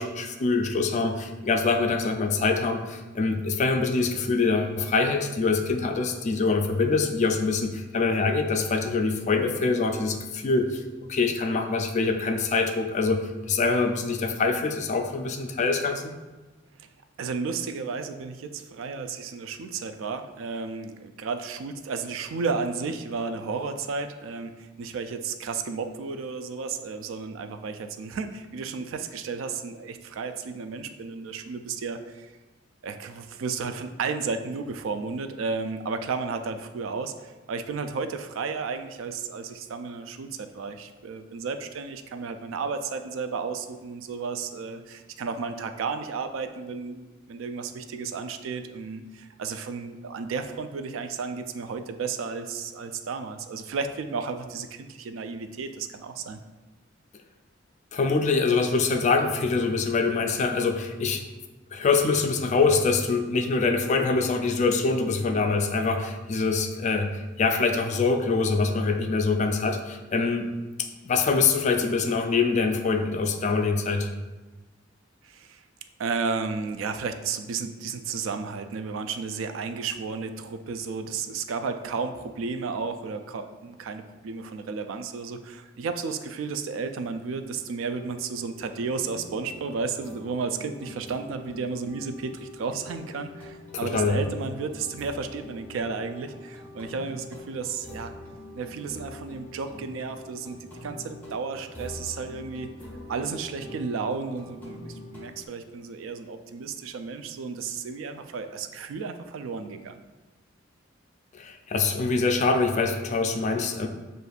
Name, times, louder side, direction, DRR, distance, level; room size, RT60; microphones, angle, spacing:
voice 1, 0.0-10.8 11.1-16.1 57.9-61.2 61.7-70.5 70.8-74.1 93.8-94.2 111.3-113.9, left 4 dB, 40° left, 5 dB, 0.3 m, -24 dB
voice 2, 17.2-32.3 32.8-56.4 75.2-75.6 76.0-98.1 98.6-102.7 103.1-110.0, right 5 dB, 90° right, 8 dB, 0.3 m, -33 dB
sound 1, 86.5-86.6 86.9-105.5, left 1 dB, 10° left, 0.9 m, -44 dB
6.5 x 2.5 x 2.4 m, 1.2 s
head